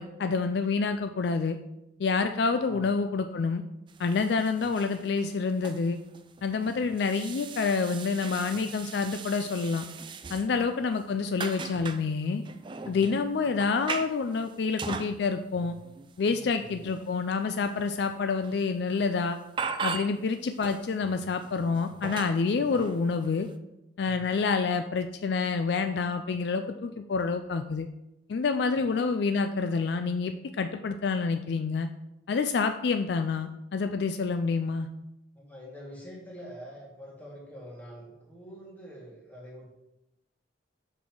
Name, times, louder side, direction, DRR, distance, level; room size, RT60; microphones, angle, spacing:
voice 1, 0.0-1.6 2.0-3.6 4.0-6.0 6.4-9.8 10.3-12.4 12.9-15.8 16.2-19.4 19.8-23.5 24.0-27.9 28.3-31.9 32.3-34.9, left 4 dB, 60° left, 8 dB, 0.4 m, -28 dB
sound 1, 3.9-10.7 11.0-12.0 12.4-15.2 15.5-18.1 18.4-18.6 18.9-19.1 19.6-20.3 20.6-23.5, right 5 dB, 25° right, 0.3 m, -40 dB
voice 2, 12.8-13.1 16.6-16.8 22.6-22.8 24.0-24.3 28.7-28.9 35.4-39.7, equal, 10° left, -3 dB, 1.8 m, -46 dB
6.3 x 5.5 x 4.5 m, 0.89 s
head